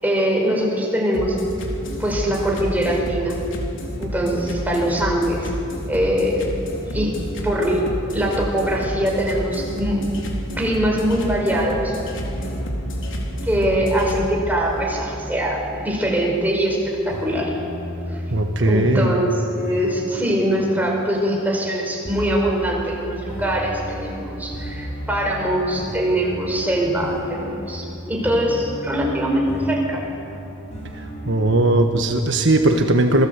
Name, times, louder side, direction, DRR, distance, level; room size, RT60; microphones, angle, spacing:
voice 1, 0.0-1.4 2.0-3.4 4.0-5.5 5.9-10.0 10.6-11.9 13.4-17.6 18.1-18.2 18.6-30.0, equal, 10° right, -1 dB, 5.1 m, -22 dB
sound 1, 1.1-14.3, equal, 70° left, 3.8 m, -30 dB
sound 2, 12.2-32.0, equal, 35° left, 5.6 m, -34 dB
voice 2, 18.3-19.1 31.0-33.3, right 1 dB, 60° right, 4 dB, 1.4 m, -18 dB
27.5 x 19.5 x 8.3 m, 2.8 s
head